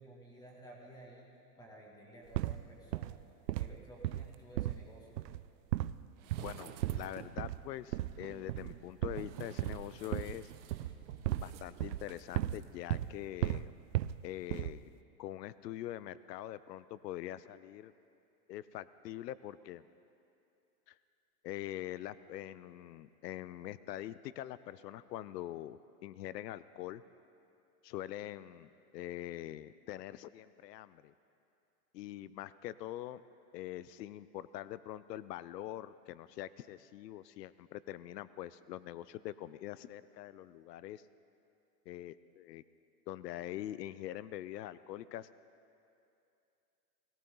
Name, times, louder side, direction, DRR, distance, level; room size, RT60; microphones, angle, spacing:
voice 1, 0.0-3.2 3.5-5.2, right 1 dB, 10° left, -2 dB, 2.2 m, -54 dB
sound 1, 2.3-2.6 2.9-3.2 3.5-3.8 4.0-4.9 5.2-5.5 5.7-6.0 6.3-6.5 6.8-7.1 7.4-7.7 7.9-8.2 8.5-8.7 9.0-10.4 10.7-11.5 11.8-12.6 12.9-13.1 13.4-14.2 14.5-14.9, right 14 dB, 90° right, 0.6 m, -35 dB
sound 2, 6.2-7.5 8.1-12.6 12.9-13.0, right 10 dB, 45° right, 0.9 m, -51 dB
voice 2, 6.4-10.5 11.4-13.7 14.2-14.9 15.2-17.9 18.5-19.8 20.9-21.0 21.4-27.0 27.8-31.1 31.9-33.2 33.5-41.0 41.9-42.6 43.1-45.3, left 13 dB, 85° left, 16 dB, 0.6 m, -44 dB
19.5 x 18.5 x 3.9 m, 2.7 s
supercardioid pair, 155°, 48 cm